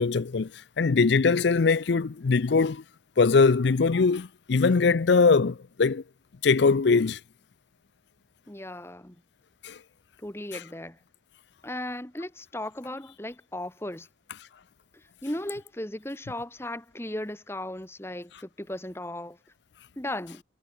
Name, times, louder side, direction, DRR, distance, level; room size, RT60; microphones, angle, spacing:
voice 1, 0.0-2.8 3.2-6.0 6.4-7.2 9.6-9.8 10.5-10.6, left 4 dB, 65° left, 0.5 m, -22 dB
voice 2, 8.5-9.2 10.2-11.0 11.6-14.1 14.9-19.4 20.0-20.4, left 1 dB, 15° left, 1.3 m, -36 dB
head